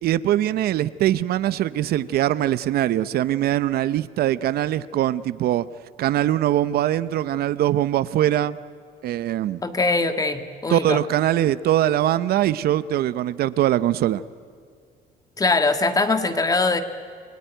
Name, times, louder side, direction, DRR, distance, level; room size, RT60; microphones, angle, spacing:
voice 1, 0.0-5.7 6.0-8.6 9.0-9.6 10.7-14.2, right 12 dB, 65° right, 16 dB, 0.7 m, -22 dB
voice 2, 9.6-11.0 15.4-16.8, left 3 dB, 20° left, 8 dB, 1.7 m, -22 dB
28.0 x 20.0 x 9.2 m, 2.1 s
cardioid pair, 110°, 17 cm